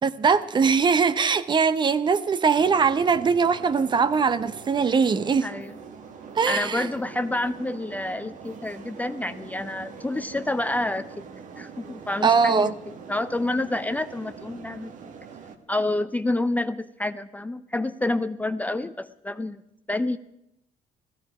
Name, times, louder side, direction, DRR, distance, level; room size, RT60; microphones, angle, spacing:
voice 1, 0.0-5.5 6.4-6.9 12.2-12.7, right 5 dB, 30° right, 0.7 m, -21 dB
sound 1, 2.6-15.6, right 6 dB, 60° right, 1.5 m, -43 dB
voice 2, 5.4-5.8 6.5-11.2 11.6-12.7 13.1-14.9 15.7-19.6 19.9-20.2, left 2 dB, 10° left, 0.5 m, -28 dB
15.5 x 14.5 x 4.9 m
cardioid pair, 110°, 14 cm